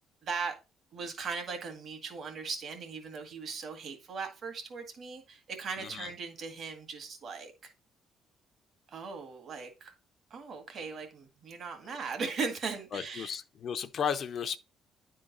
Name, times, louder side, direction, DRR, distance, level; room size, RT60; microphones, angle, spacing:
voice 1, 0.2-0.6 0.9-7.7 8.9-9.9 10.3-13.4, right 5 dB, 50° right, 1.8 m, -38 dB
voice 2, 5.8-6.1 12.9-14.6, left 7 dB, 50° left, 0.6 m, -34 dB
10.0 x 3.8 x 4.0 m
cardioid pair, 110°, 0 cm